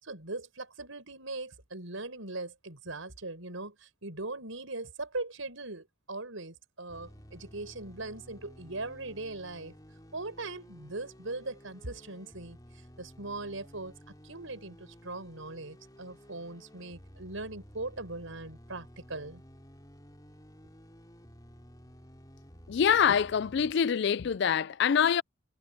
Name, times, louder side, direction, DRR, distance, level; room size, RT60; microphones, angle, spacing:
voice 1, 0.0-9.7 10.1-12.6 13.0-13.9 14.2-19.4, right 2 dB, 75° right, 5.2 m, -40 dB
sound 1, 6.9-23.7, equal, 20° left, 3.6 m, -53 dB
voice 2, 22.7-25.2, left 7 dB, 55° left, 0.4 m, -25 dB
head